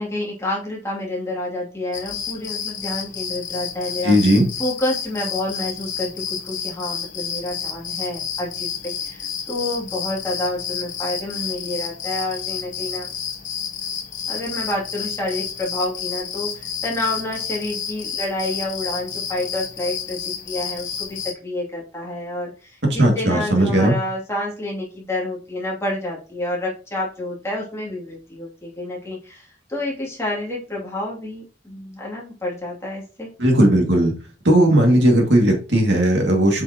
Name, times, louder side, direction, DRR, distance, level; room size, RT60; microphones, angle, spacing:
voice 1, 0.0-4.2 4.6-13.1 14.3-33.3 34.9-35.0, left 1 dB, 15° left, -4 dB, 2.7 m, -29 dB
sound 1, 1.9-21.3, left 7 dB, 45° left, 1.1 m, -30 dB
voice 2, 4.0-4.5 22.9-23.9 33.4-34.1 34.4-36.6, right 1 dB, 65° right, 1 dB, 2.3 m, -16 dB
7.8 x 5.6 x 2.9 m, 0.33 s
head